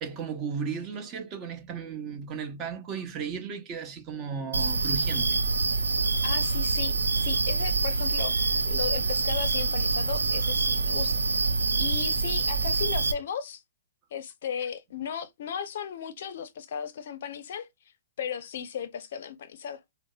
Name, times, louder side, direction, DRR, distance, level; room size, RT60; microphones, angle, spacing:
voice 1, 0.0-5.4, right 6 dB, 30° right, 0.9 m, -35 dB
sound 1, 4.5-13.1, right 3 dB, 85° right, 0.4 m, -26 dB
voice 2, 6.2-7.0 7.2-8.3 8.6-11.2 11.8-13.6 14.1-17.7 18.2-19.8, left 8 dB, 60° left, 0.5 m, -35 dB
4.7 x 2.0 x 2.2 m
hypercardioid pair, 130°, 0 cm